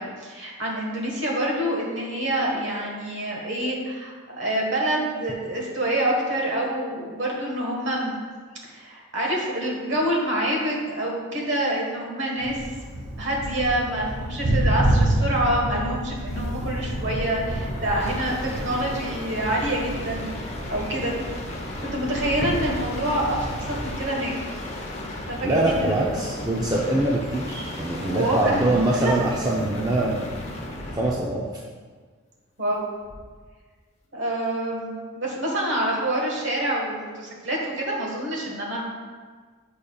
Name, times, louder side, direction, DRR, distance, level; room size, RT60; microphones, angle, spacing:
voice 1, 0.0-8.2 8.6-12.6 12.9-18.3 18.6-21.1 21.9-24.3 24.9-26.1 28.1-29.1 32.6-32.9 34.1-38.8, right 1 dB, 55° right, -2 dB, 1.4 m, -27 dB
Thunder, 12.4-24.0, right 1 dB, 80° right, 1.2 m, -29 dB
sound 1, 16.2-31.3 33.0-33.5, left 1 dB, 30° left, 0.7 m, -35 dB
voice 2, 25.4-30.3 30.9-31.5, right 1 dB, 15° right, -3 dB, 0.4 m, -23 dB
8.3 x 5.1 x 2.3 m, 1.5 s
head